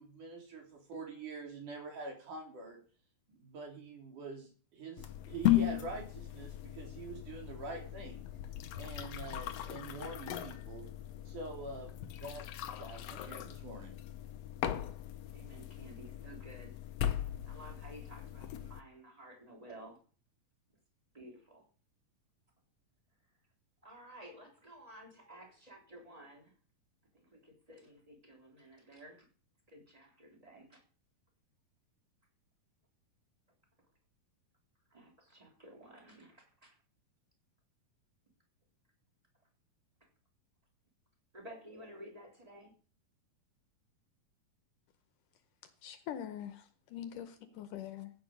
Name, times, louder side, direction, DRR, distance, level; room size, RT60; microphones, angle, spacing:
voice 1, 0.0-2.8 3.3-8.3 8.7-10.8 11.3-12.4 12.8-14.0, right 3 dB, 60° right, 5.0 m, -45 dB
sound 1, 5.0-18.8, left 13 dB, 90° left, 1.4 m, -37 dB
voice 2, 15.3-16.7 17.4-20.0 21.1-21.7 23.8-26.6 27.1-29.3 29.7-30.8 34.9-36.8 41.3-42.7 47.1-47.6, right 1 dB, 10° right, 3.4 m, -53 dB
voice 3, 45.8-48.1, left 10 dB, 70° left, 2.2 m, -43 dB
15.5 x 9.4 x 5.3 m
omnidirectional pair, 4.2 m